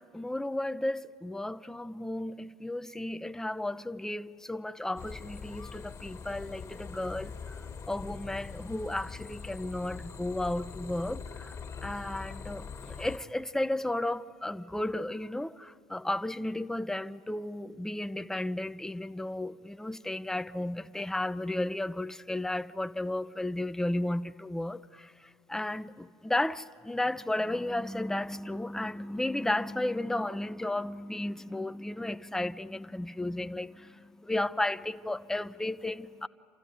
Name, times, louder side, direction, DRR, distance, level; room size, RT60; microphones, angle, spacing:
voice 1, 0.0-36.3, left 1 dB, 5° left, 0.6 m, -34 dB
sound 1, 5.0-13.2, left 6 dB, 40° left, 1.7 m, -43 dB
28.0 x 14.0 x 9.5 m
hypercardioid pair, 65°, 8 cm